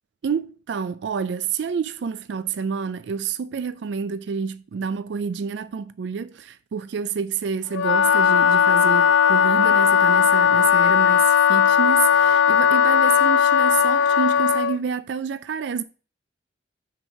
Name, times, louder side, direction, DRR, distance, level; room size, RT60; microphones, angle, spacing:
voice 1, 0.2-15.8, right 6 dB, 70° right, 0.4 m, -28 dB
Wind instrument woodwind instrument, 7.7-14.8, left 8 dB, 90° left, 0.3 m, -17 dB
6.2 x 4.7 x 6.5 m
head